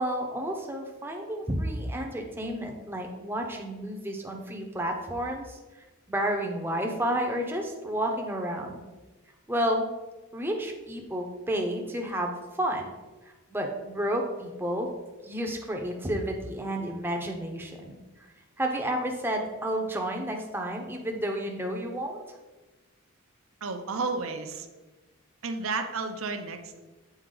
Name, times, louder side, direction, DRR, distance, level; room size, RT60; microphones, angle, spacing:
voice 1, 0.0-5.6 6.1-8.8 9.5-9.8 10.3-12.9 13.5-14.9 15.2-18.0 18.6-22.2, right 1 dB, 10° right, 2 dB, 0.7 m, -31 dB
voice 2, 23.6-24.7 25.4-26.8, right 4 dB, 70° right, 6 dB, 0.7 m, -32 dB
8.0 x 4.5 x 3.8 m, 1.2 s
head